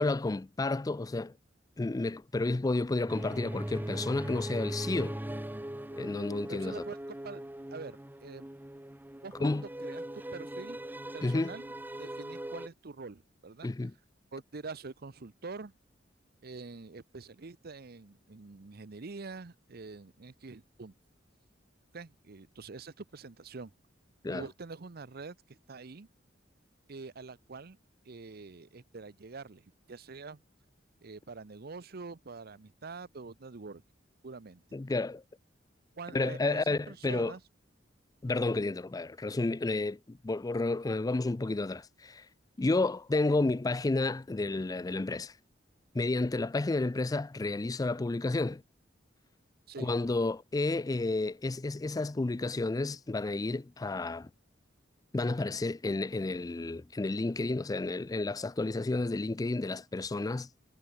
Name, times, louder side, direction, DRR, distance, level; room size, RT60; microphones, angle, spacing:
voice 1, 0.0-1.3 1.8-5.2 5.9-6.8 9.4-9.6 11.2-11.5 13.6-13.9 24.2-24.5 34.7-35.2 36.1-37.3 38.2-42.3 42.6-45.3 45.9-48.6 49.8-54.3 55.1-60.7, left 2 dB, 20° left, 0.4 m, -31 dB
sound 1, 3.1-12.7, right 1 dB, 10° right, 0.9 m, -40 dB
voice 2, 6.5-7.0 7.2-7.4 7.7-8.5 9.2-10.0 10.3-10.8 11.1-11.7 12.0-13.7 14.3-15.7 16.4-20.9 21.9-23.7 24.3-26.1 26.9-27.8 28.0-29.6 29.9-30.4 31.0-33.8 34.2-34.6 36.0-37.4 38.4-38.6 49.7-49.9, right 4 dB, 55° right, 0.8 m, -45 dB
head